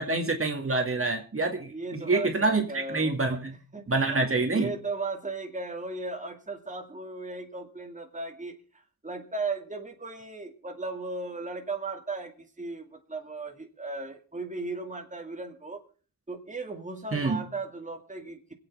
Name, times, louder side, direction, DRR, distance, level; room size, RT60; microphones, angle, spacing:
voice 1, 0.0-3.6 3.9-4.7 17.1-17.4, right 3 dB, 40° right, 4 dB, 2.2 m, -27 dB
voice 2, 1.7-3.2 3.5-15.8 16.3-18.5, right 3 dB, 20° right, 3 dB, 2.3 m, -36 dB
26.5 x 8.9 x 3.5 m, 0.38 s
cardioid pair, 70°, 34 cm